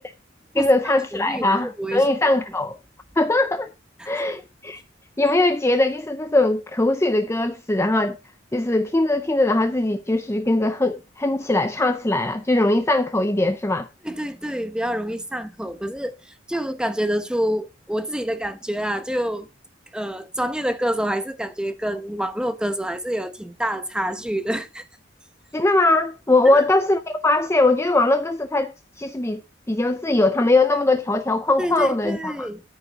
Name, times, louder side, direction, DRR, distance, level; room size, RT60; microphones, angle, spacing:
voice 1, 0.6-2.8 3.2-3.7 4.0-4.8 5.2-8.2 8.5-13.9 25.5-28.7 29.0-29.4 29.7-32.5, left 2 dB, 15° left, 0.5 m, -20 dB
voice 2, 1.1-2.1 4.0-4.4 14.0-19.5 19.9-24.8 26.4-26.6 31.6-32.6, equal, 5° right, 0.9 m, -27 dB
13.5 x 5.3 x 4.9 m
head